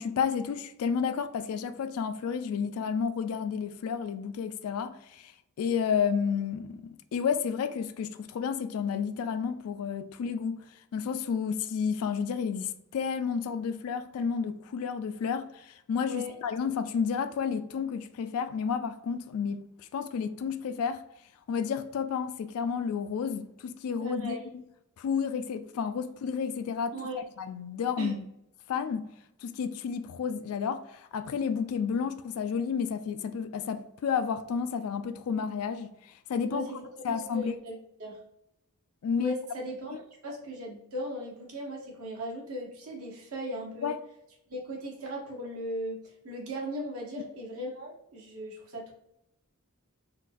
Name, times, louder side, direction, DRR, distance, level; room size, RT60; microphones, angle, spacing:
voice 1, 0.0-5.3 5.6-10.6 10.9-19.6 19.9-21.0 21.5-24.6 25.0-26.9 27.4-28.2 28.7-29.1 29.4-36.7 37.0-37.5 39.0-39.3 43.8-44.0, left 6 dB, 70° left, 0.3 m, -31 dB
voice 2, 24.0-24.5 26.9-27.2 28.0-28.1 36.5-38.2 39.2-43.9 44.5-46.0 46.2-48.9, equal, 75° right, 1.1 m, -38 dB
3.9 x 2.5 x 2.4 m
head